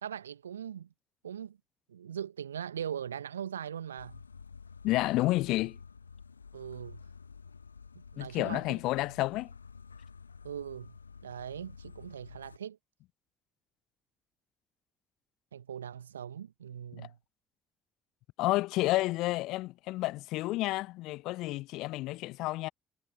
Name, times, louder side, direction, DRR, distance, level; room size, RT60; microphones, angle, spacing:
voice 1, 0.0-0.9 1.2-1.6 1.9-4.2 6.5-7.0 8.1-8.8 10.4-11.0 11.2-12.8 15.5-17.2, right 9 dB, 80° right, 1.8 m, -40 dB
sound 1, 4.0-12.6, left 5 dB, 85° left, 1.4 m, -50 dB
voice 2, 4.8-5.8 8.2-9.5 16.9-17.1 18.4-22.7, left 19 dB, 65° left, 1.0 m, -30 dB
figure-of-eight pair, 45°, 0 cm